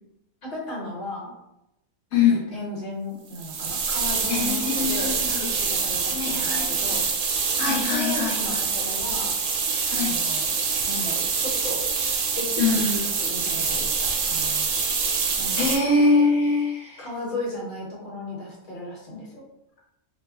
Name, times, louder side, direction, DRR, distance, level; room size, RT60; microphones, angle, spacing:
voice 1, 0.4-1.3 2.1-7.0 7.6-9.3 9.9-10.5 10.8-11.8 12.4-14.7 15.3-15.7 17.0-19.4, left 2 dB, 50° left, -3 dB, 1.1 m, -35 dB
voice 2, 2.1-2.5 4.3-5.5 6.1-6.9 7.6-8.6 9.9-10.2 12.6-13.0 15.6-17.1, left 4 dB, 80° left, -2 dB, 1.1 m, -23 dB
sound 1, 3.3-15.8, right 5 dB, 85° right, 1.1 m, -25 dB
2.6 x 2.1 x 3.5 m, 0.89 s
omnidirectional pair, 1.5 m